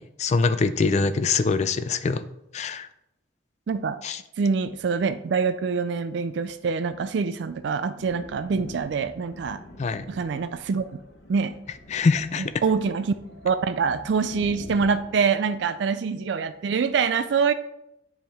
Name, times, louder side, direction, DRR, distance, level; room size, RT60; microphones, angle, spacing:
voice 1, 0.0-2.2 2.5-2.9 4.0-4.2 9.8-10.0 11.9-12.5, left 4 dB, 35° left, 13 dB, 0.3 m, -24 dB
voice 2, 3.7-4.0 4.4-9.6 10.1-10.8 11.3-11.6 12.4-13.1 13.4-17.5, right 5 dB, 60° right, 11 dB, 0.3 m, -25 dB
Thunder, 8.0-15.2, left 1 dB, 65° left, 1.1 m, -45 dB
10.0 x 3.6 x 3.4 m, 0.83 s
head